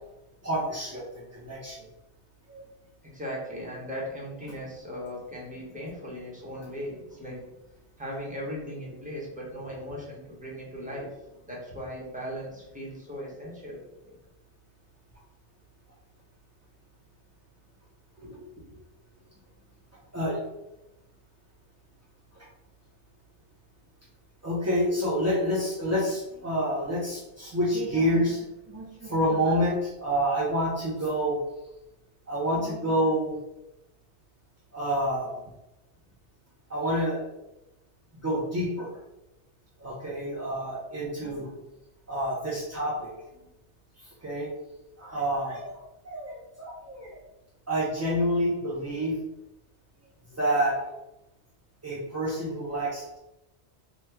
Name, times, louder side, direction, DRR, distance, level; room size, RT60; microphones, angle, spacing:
voice 1, 0.4-1.9 2.5-2.6 6.5-6.7 20.1-20.4 22.3-22.4 24.4-31.4 32.3-33.4 34.7-35.4 36.7-37.2 38.2-38.9 39.8-41.5 42.1-43.1 44.0-44.5 45.0-45.8 46.0-47.2 47.7-49.2 50.3-50.8 51.8-53.2, equal, 25° right, -6 dB, 0.3 m, -28 dB
voice 2, 3.0-7.4 8.0-11.1 11.4-13.8 14.1-14.2 18.2-18.8, equal, 10° right, -5 dB, 0.7 m, -38 dB
2.9 x 2.2 x 3.4 m, 0.92 s
omnidirectional pair, 1.1 m